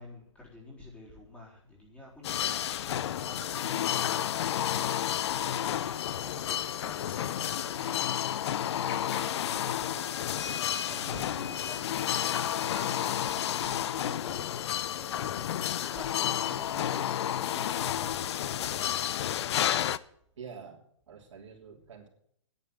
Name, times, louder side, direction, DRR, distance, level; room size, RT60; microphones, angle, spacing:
voice 1, 0.0-4.4 5.3-7.0 7.3-8.1 8.6-12.0 12.7-18.4 18.7-19.2, left 2 dB, 10° left, -4 dB, 4.0 m, -49 dB
sound 1, 2.2-20.0, left 10 dB, 60° left, 0.6 m, -31 dB
sound 2, 2.8-2.9 3.3-3.6 4.6-4.7 5.1-5.2 5.6-6.1 6.4-6.5 6.8-7.9 8.3-8.4 8.9-9.5 9.9-11.5 12.0-12.1 12.4-13.7 14.3-14.4, left 4 dB, 45° left, 3.6 m, -47 dB
sound 3, 10.3-14.0, left 4 dB, 80° left, 4.9 m, -49 dB
voice 2, 10.9-11.4 20.4-22.1, right 6 dB, 75° right, 1 dB, 3.4 m, -47 dB
10.0 x 8.2 x 9.6 m, 0.69 s
hypercardioid pair, 150°, 16 cm